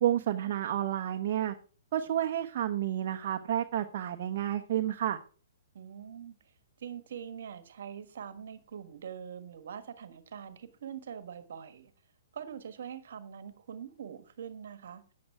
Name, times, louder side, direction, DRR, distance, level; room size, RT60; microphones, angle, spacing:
voice 1, 0.0-1.5 1.9-5.2, right 11 dB, 50° right, 1.1 m, -30 dB
voice 2, 5.7-6.4 6.8-11.9 12.3-15.1, right 8 dB, 65° right, 1.5 m, -43 dB
9.4 x 8.8 x 4.6 m
hypercardioid pair, 130°, 0 cm